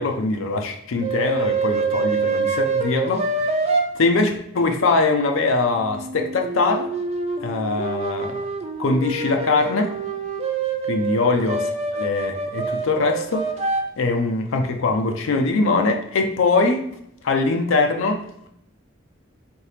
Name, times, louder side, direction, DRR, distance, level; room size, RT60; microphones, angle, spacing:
voice 1, 0.0-3.5 3.9-6.9 7.4-8.5 8.8-9.9 10.9-13.5 14.0-16.9 17.2-18.2, left 3 dB, 75° left, 3 dB, 0.5 m, -22 dB
sound 1, 1.0-3.8 5.8-13.8, right 3 dB, 30° right, 0.4 m, -26 dB
4.4 x 2.8 x 3.3 m, 0.74 s
head